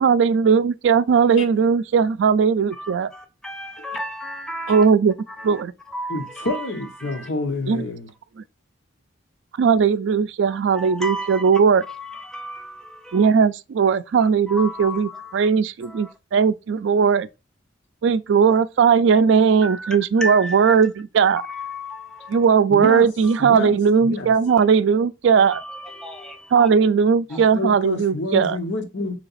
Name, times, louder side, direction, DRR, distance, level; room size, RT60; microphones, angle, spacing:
voice 1, 0.0-3.1 4.7-5.1 5.4-5.7 7.7-7.8 9.6-11.8 13.1-17.3 18.0-21.4 22.3-25.6 26.5-28.6, right 6 dB, 70° right, 0.3 m, -18 dB
voice 2, 2.7-4.9 5.3-7.3 10.5-11.5 11.8-13.3 14.2-15.5 15.8-16.1 19.6-20.8 21.4-22.4 23.2-23.5 24.5-24.6 25.5-26.7 27.3-27.4, equal, 5° left, 0.7 m, -34 dB
voice 3, 6.1-8.1 22.7-23.1 23.4-24.3 27.3-29.2, left 1 dB, 75° left, 1.0 m, -28 dB
3.9 x 3.3 x 4.0 m
head